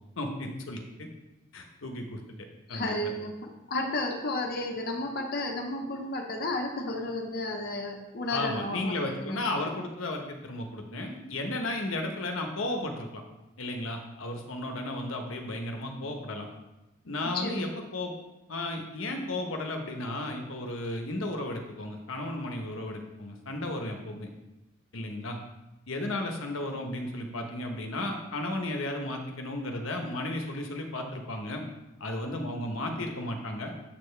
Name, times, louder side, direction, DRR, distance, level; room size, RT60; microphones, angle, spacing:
voice 1, 0.2-1.1 1.5-2.2 2.7-3.1 8.3-13.2 13.6-16.5 17.0-18.1 18.5-24.3 24.9-25.4 25.9-31.6 32.0-33.7, left 1 dB, 70° left, 3 dB, 1.0 m, -34 dB
voice 2, 2.7-9.6 17.3-17.6, left 2 dB, 50° left, 2 dB, 0.9 m, -33 dB
7.5 x 6.7 x 3.3 m, 1.0 s
head